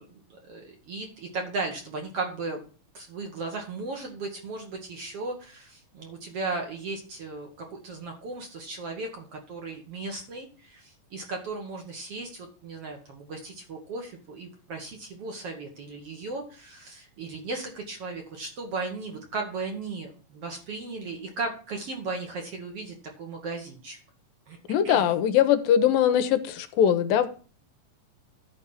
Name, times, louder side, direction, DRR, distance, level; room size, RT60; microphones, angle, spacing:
voice 1, 0.0-2.6 2.9-24.0 24.5-24.6 24.8-25.0, right 3 dB, 55° right, 2 dB, 1.9 m, -36 dB
voice 2, 24.7-27.3, left 9 dB, 85° left, 11 dB, 2.4 m, -21 dB
11.5 x 4.9 x 5.6 m, 0.38 s
omnidirectional pair, 4.0 m